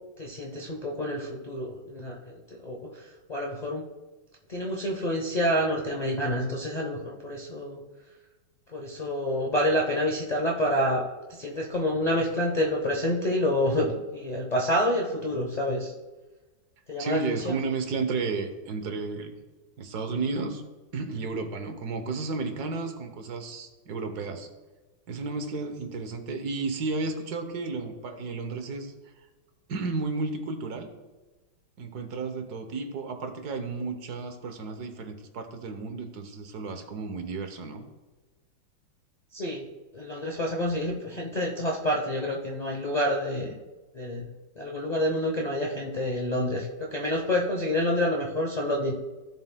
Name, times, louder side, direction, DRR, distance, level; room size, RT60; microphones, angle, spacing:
voice 1, 0.2-3.9 4.5-7.8 8.7-11.0 11.3-15.9 16.9-17.5 39.3-39.6 39.9-43.6 43.9-44.3 44.6-48.9, left 1 dB, 70° left, -2 dB, 0.4 m, -28 dB
voice 2, 17.0-19.3 19.8-20.6 20.9-24.5 25.1-28.9 29.7-30.9 31.8-37.8, right 4 dB, 60° right, 7 dB, 1.3 m, -32 dB
15.0 x 7.2 x 2.2 m, 1.2 s
omnidirectional pair, 2.2 m